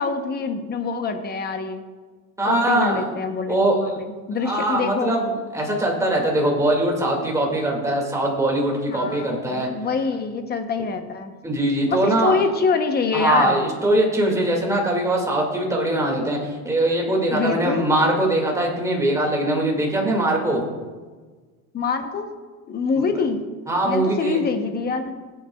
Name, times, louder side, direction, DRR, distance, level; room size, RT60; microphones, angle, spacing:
voice 1, 0.0-1.8 2.5-5.1 8.9-11.3 11.9-13.6 17.3-17.9 21.7-22.3 22.7-23.4 23.8-25.1, left 5 dB, 25° left, 7 dB, 0.8 m, -25 dB
voice 2, 2.4-3.1 3.5-3.8 4.4-9.7 11.4-12.4 13.1-20.6 23.0-23.1 23.7-24.4, right 1 dB, 10° right, -1 dB, 2.0 m, -21 dB
20.0 x 8.0 x 2.3 m, 1.4 s
cardioid pair, 145°, 38 cm